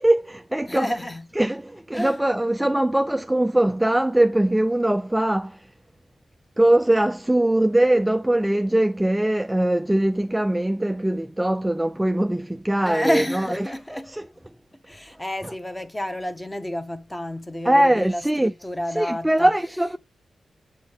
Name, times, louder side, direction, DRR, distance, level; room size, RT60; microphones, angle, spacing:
voice 1, 0.0-0.9 1.3-5.7 6.6-14.3 15.4-15.5 17.6-18.5 18.9-20.0, right 1 dB, 5° right, 0.3 m, -21 dB
voice 2, 0.7-1.3 1.9-2.2 12.8-14.1 14.9-19.5, left 1 dB, 10° left, 0.9 m, -29 dB
7.7 x 4.0 x 3.5 m
wide cardioid pair, 145°, 0 cm